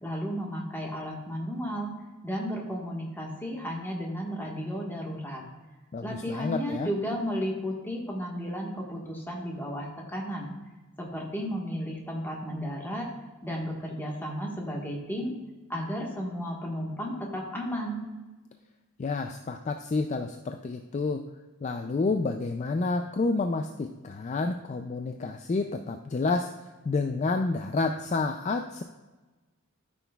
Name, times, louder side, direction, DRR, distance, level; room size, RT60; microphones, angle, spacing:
voice 1, 0.0-1.9 2.2-5.4 6.0-10.5 11.0-13.1 13.4-15.3 15.7-18.0, equal, 10° left, -2 dB, 1.4 m, -33 dB
voice 2, 5.9-6.9 19.0-21.3 21.6-28.8, left 3 dB, 35° left, 6 dB, 0.3 m, -29 dB
13.5 x 6.1 x 2.3 m, 1.2 s
head